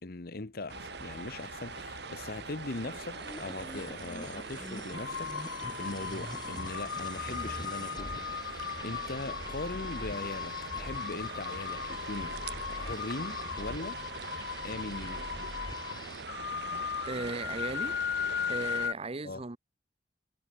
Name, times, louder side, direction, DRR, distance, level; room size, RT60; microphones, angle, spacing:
voice 1, 0.0-14.0 14.6-15.3 19.2-19.4, left 2 dB, 60° left, 1.1 m, -40 dB
sound 1, 0.7-3.3 4.2-4.3 4.9-18.9, left 8 dB, 75° left, 0.4 m, -38 dB
sound 2, 0.7-18.9, right 5 dB, 65° right, 1.0 m, -43 dB
sound 3, 3.1-16.3, left 2 dB, 25° left, 1.0 m, -45 dB
voice 2, 17.1-18.0 18.5-19.6, right 2 dB, 35° right, 0.9 m, -36 dB
head